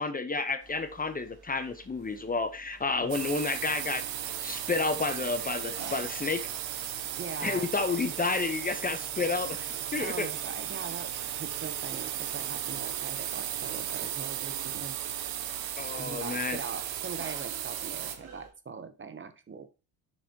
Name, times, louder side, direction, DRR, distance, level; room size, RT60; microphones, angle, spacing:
voice 1, 0.0-6.5 7.4-9.6 9.9-10.3 15.8-16.6, left 3 dB, 20° left, 0.8 m, -31 dB
sound 1, 0.6-18.5, right 4 dB, 55° right, 2.6 m, -52 dB
sound 2, 3.1-18.1, right 11 dB, 80° right, 1.1 m, -35 dB
voice 2, 7.2-7.9 10.0-15.0 16.0-19.7, right 5 dB, 25° right, 0.7 m, -41 dB
6.6 x 6.3 x 2.8 m
cardioid pair, 95°, 44 cm